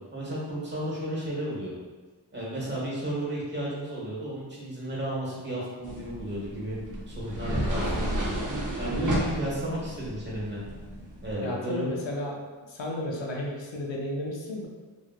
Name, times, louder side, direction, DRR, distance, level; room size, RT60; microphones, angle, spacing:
voice 1, 0.1-1.7 2.3-6.8 7.1-8.3 8.8-10.6 11.2-11.9, right 1 dB, 20° right, -6 dB, 1.3 m, -33 dB
sound 1, 5.8-11.3, right 1 dB, 40° right, 0.7 m, -32 dB
voice 2, 11.4-12.4 12.7-14.7, left 1 dB, 70° left, -1 dB, 0.7 m, -33 dB
2.9 x 2.6 x 2.4 m, 1.3 s
cardioid pair, 50°, 47 cm